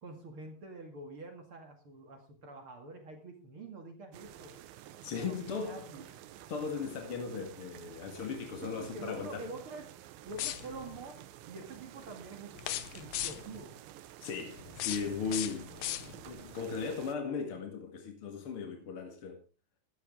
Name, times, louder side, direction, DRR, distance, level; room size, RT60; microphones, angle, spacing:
voice 1, 0.0-4.6 5.2-6.1 8.6-9.9 10.2-13.8, right 2 dB, 45° right, 2.0 m, -46 dB
sound 1, 4.1-17.2, right 12 dB, 85° right, 3.3 m, -51 dB
voice 2, 5.0-5.9 6.5-9.5 14.2-15.7 16.3-19.4, left 5 dB, 50° left, 1.8 m, -37 dB
sound 2, 10.3-11.0 12.6-13.6 14.6-16.4, left 13 dB, 80° left, 2.0 m, -38 dB
14.5 x 13.0 x 3.8 m
omnidirectional pair, 5.1 m